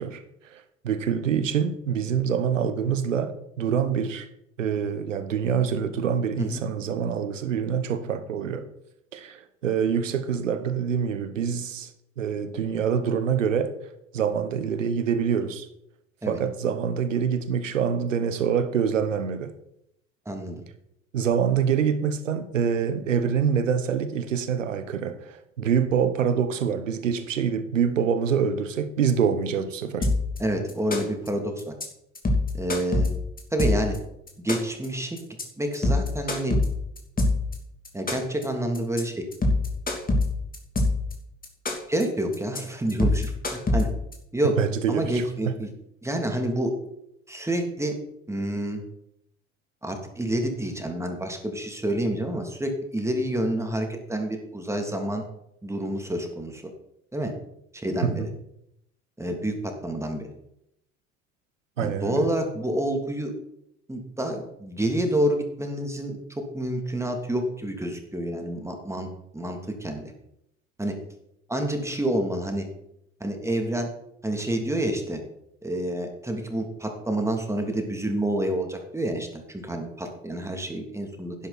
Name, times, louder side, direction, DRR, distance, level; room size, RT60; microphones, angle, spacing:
voice 1, 0.0-4.3 4.6-8.7 9.1-11.9 12.2-13.7 14.1-15.7 16.3-19.5 21.1-30.1 44.6-45.5 58.0-58.3 61.8-62.3, right 7 dB, 85° right, 1.2 m, -25 dB
voice 2, 20.3-20.6 30.4-31.7 32.5-33.1 33.5-34.0 34.4-35.2 35.6-36.6 37.9-39.3 41.9-43.9 44.3-44.6 44.9-45.7 46.0-46.7 47.3-47.9 48.3-48.8 49.8-55.2 55.6-56.7 57.1-57.3 57.7-58.3 59.2-60.3 61.8-63.3 63.9-69.1 69.3-70.0 70.8-71.0 71.5-72.7 73.2-73.9 74.2-75.2 75.6-81.3, right 1 dB, 5° right, 2.9 m, -28 dB
sound 1, 30.0-30.4 30.7-31.3 31.6-31.8 32.2-34.0 34.3-34.9 35.2-35.4 35.7-37.5 37.9-38.4 38.7-39.0 39.3-41.1 41.4-42.0 42.3-42.6 42.9-44.1, left 2 dB, 25° left, 3.1 m, -24 dB
11.5 x 10.5 x 4.2 m
hypercardioid pair, 70°, 37 cm